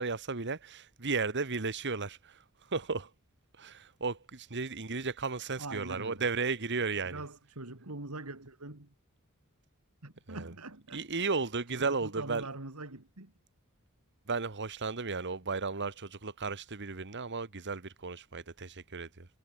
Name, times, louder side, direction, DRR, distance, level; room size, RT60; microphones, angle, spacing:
voice 1, 0.0-2.4 2.7-3.1 3.6-7.2 10.3-10.5 10.9-12.5 14.3-19.3, right 4 dB, 55° right, 1.7 m, -34 dB
voice 2, 5.6-6.2 7.0-8.9 10.0-11.3 11.7-13.3, right 2 dB, 80° right, 2.8 m, -43 dB
head